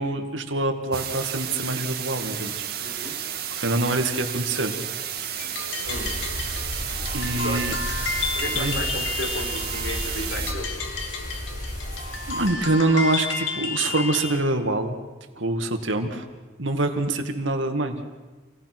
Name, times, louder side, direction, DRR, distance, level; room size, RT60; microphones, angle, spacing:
voice 1, 0.0-3.0 3.6-4.7 7.1-7.8 8.5-8.8 12.3-15.0 15.4-16.3 16.6-18.0, right 2 dB, 80° right, 5 dB, 2.2 m, -25 dB
sound 1, 0.9-10.5, right 9 dB, 50° right, 2.2 m, -32 dB
voice 2, 2.8-3.2 5.8-6.2 7.4-7.7 8.4-10.8, left 1 dB, 70° left, 2 dB, 4.1 m, -34 dB
sound 2, 5.4-14.4, left 4 dB, 85° left, 2.2 m, -32 dB
sound 3, 5.8-12.5, left 1 dB, 45° left, 5.7 m, -34 dB
27.5 x 17.5 x 6.2 m, 1.3 s
head